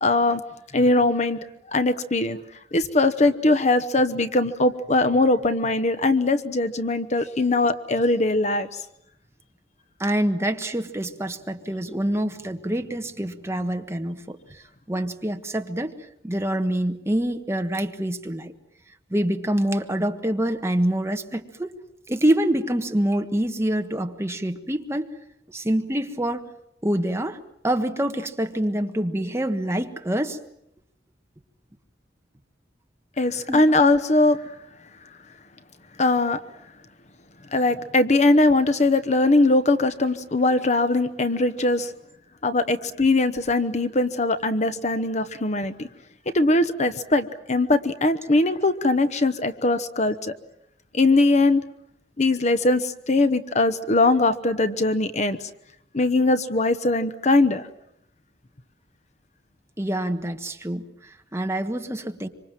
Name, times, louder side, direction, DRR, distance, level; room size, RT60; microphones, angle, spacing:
voice 1, 0.0-0.4 0.7-2.4 2.7-8.8 33.2-34.5 36.0-36.4 37.5-41.9 42.4-45.9 46.3-50.3 50.9-51.6 52.2-55.4 55.9-57.7, left 2 dB, 40° left, 11 dB, 1.0 m, -21 dB
voice 2, 10.0-14.6 14.9-16.0 16.2-18.5 19.1-21.8 22.1-25.1 25.5-26.5 26.8-27.4 27.6-30.4 33.5-33.6 59.8-62.3, right 1 dB, 15° right, 6 dB, 1.4 m, -26 dB
25.5 x 25.5 x 7.6 m, 0.77 s
head